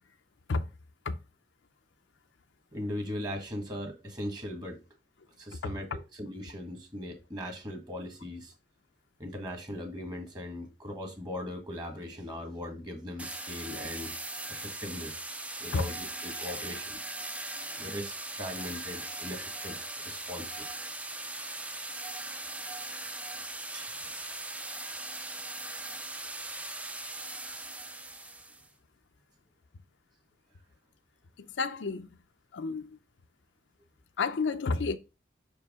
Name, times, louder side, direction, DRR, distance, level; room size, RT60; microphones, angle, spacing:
voice 1, 2.7-4.8 5.4-8.5 9.2-14.1 14.5-15.3 15.6-17.0 17.8-20.7 23.7-24.1, left 1 dB, 25° right, 1.4 m, -39 dB
sound 1, 13.2-28.7, right 2 dB, 5° right, 0.4 m, -39 dB
voice 2, 31.4-32.1 32.5-33.0 34.2-35.0, left 4 dB, 75° left, 0.5 m, -30 dB
5.8 x 4.7 x 3.5 m
head